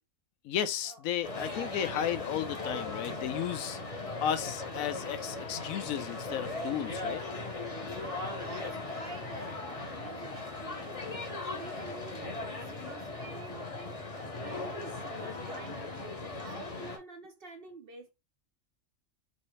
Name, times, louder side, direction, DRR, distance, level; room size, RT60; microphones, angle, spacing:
voice 1, 0.4-3.8 4.2-7.2, left 10 dB, 80° left, 1.0 m, -34 dB
sound 1, 1.2-17.0, left 2 dB, 30° left, 0.8 m, -38 dB
voice 2, 7.9-14.1 14.4-18.1, right 3 dB, 55° right, 0.7 m, -48 dB
4.1 x 2.6 x 3.1 m
omnidirectional pair, 1.4 m